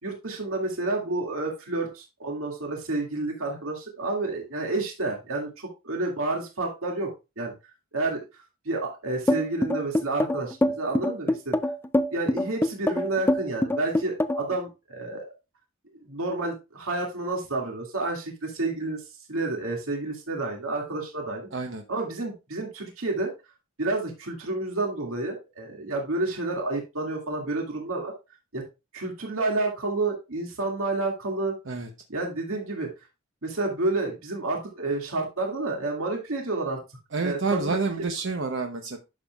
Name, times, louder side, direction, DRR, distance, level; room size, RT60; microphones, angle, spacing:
voice 1, 0.0-7.1 7.4-7.5 7.9-11.6 12.1-15.2 16.1-19.0 19.3-23.3 23.8-28.1 28.5-28.6 28.9-31.5 32.1-32.9 33.4-36.8 37.2-37.8, right 2 dB, 75° right, 0 dB, 2.2 m, -30 dB
sound 1, 9.3-14.5, left 1 dB, 10° left, 0.4 m, -24 dB
voice 2, 21.5-21.8 31.7-31.9 37.1-39.0, right 3 dB, 60° right, 4 dB, 0.9 m, -28 dB
11.0 x 7.1 x 2.4 m, 0.26 s
head